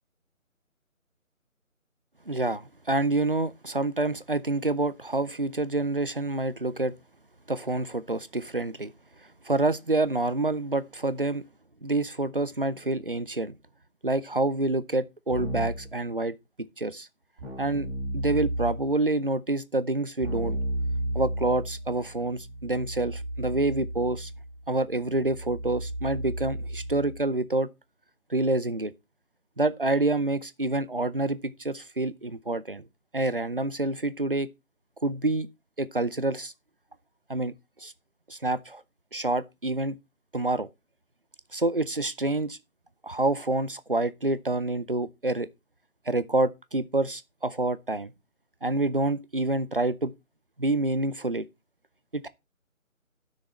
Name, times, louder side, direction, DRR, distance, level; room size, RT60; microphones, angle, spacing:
voice 1, 2.3-6.9 7.5-8.9 9.4-11.4 11.8-13.6 14.0-16.3 16.8-17.1 17.6-17.9 18.1-20.6 21.1-24.3 24.7-27.7 28.3-28.9 29.6-32.8 33.1-34.5 35.0-35.5 35.8-36.5 37.3-37.5 37.8-37.9 38.3-38.8 39.1-40.0 40.3-40.7 41.5-42.6 43.0-45.5 46.1-48.1 48.6-50.1 50.6-51.4 52.1-52.3, right 2 dB, 40° right, 0.5 m, -27 dB
Keyboard (musical), 15.3-15.9 17.4-19.0 20.2-27.2, right 1 dB, 25° right, 3.5 m, -33 dB
11.5 x 6.4 x 4.1 m
figure-of-eight pair, 160°, 42 cm